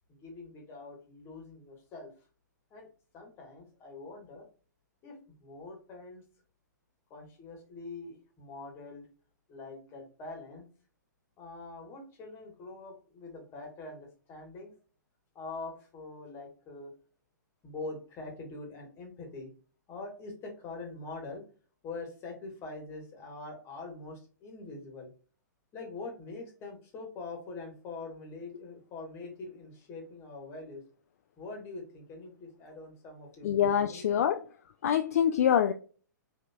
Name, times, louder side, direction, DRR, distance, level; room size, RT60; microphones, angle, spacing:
voice 1, 0.1-2.1 2.7-2.9 3.1-4.5 5.0-6.2 7.1-9.1 9.5-10.7 11.4-14.7 15.3-16.9 17.6-19.5 19.9-21.4 21.8-25.1 25.7-30.8 31.4-34.0, left 3 dB, 25° left, 1.5 m, -44 dB
voice 2, 33.4-34.4 34.8-35.7, left 9 dB, 50° left, 0.4 m, -25 dB
5.2 x 2.8 x 2.3 m
figure-of-eight pair, 110°, 10 cm